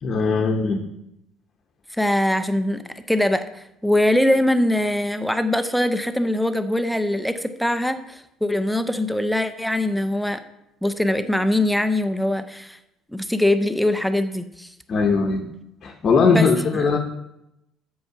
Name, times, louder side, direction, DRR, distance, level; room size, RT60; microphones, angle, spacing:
voice 1, 0.0-0.8 14.9-15.5 15.8-17.0, left 4 dB, 30° left, 2 dB, 0.8 m, -19 dB
voice 2, 2.0-2.8 3.1-10.4 10.8-12.8 13.1-14.7 16.3-16.5 16.7-16.9, left 1 dB, ahead, 10 dB, 0.5 m, -22 dB
8.1 x 5.5 x 6.8 m, 0.86 s
cardioid pair, 170°, 0 cm